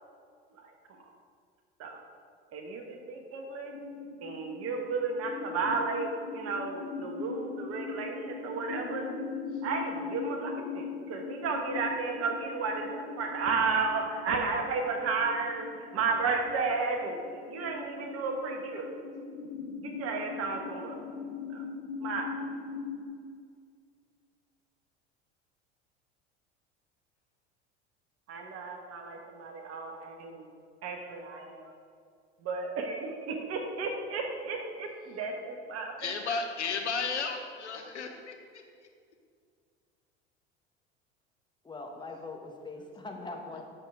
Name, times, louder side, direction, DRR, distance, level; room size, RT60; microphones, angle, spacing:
voice 1, 2.5-3.7 4.2-9.1 9.6-18.9 19.8-21.0 21.5-21.6 22.0-22.4 28.3-30.5 30.8-31.7 32.4-35.9, right 4 dB, 45° right, 3 dB, 1.3 m, -33 dB
sound 1, 3.7-23.1, left 5 dB, 55° left, 1.8 m, -41 dB
voice 2, 36.0-38.6, left 5 dB, 85° left, 4 dB, 0.8 m, -34 dB
voice 3, 41.6-43.6, left 3 dB, 15° left, 2 dB, 1.1 m, -41 dB
8.1 x 6.4 x 3.6 m, 2.2 s
figure-of-eight pair, 70°, 34 cm